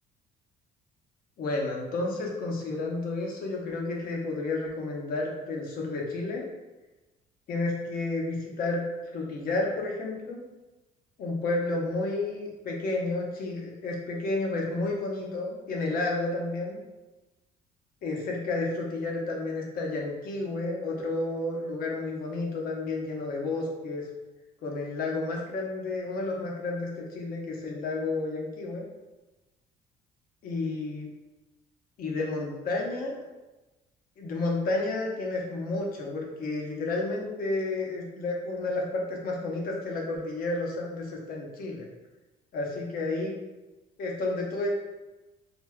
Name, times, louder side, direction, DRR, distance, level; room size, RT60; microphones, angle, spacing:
voice 1, 1.4-6.5 7.5-8.8 9.1-10.4 11.2-16.8 18.0-24.1 24.6-28.9 30.4-31.1 32.0-33.2 34.2-41.9 42.5-43.4 44.0-44.7, left 2 dB, 60° left, -1 dB, 0.7 m, -31 dB
3.4 x 2.5 x 2.2 m, 1.1 s
cardioid pair, 110°, 17 cm